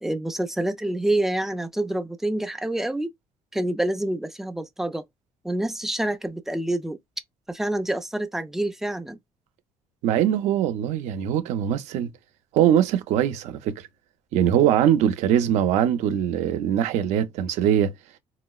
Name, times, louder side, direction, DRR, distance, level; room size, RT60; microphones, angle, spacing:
voice 1, 0.0-3.1 3.5-5.0 5.4-7.0 7.5-9.2, right 1 dB, 5° right, 0.4 m, -27 dB
voice 2, 10.0-12.1 12.5-13.7 14.3-17.9, right 10 dB, 75° right, 0.6 m, -22 dB
4.2 x 2.0 x 2.3 m
cardioid pair, 155°, 12 cm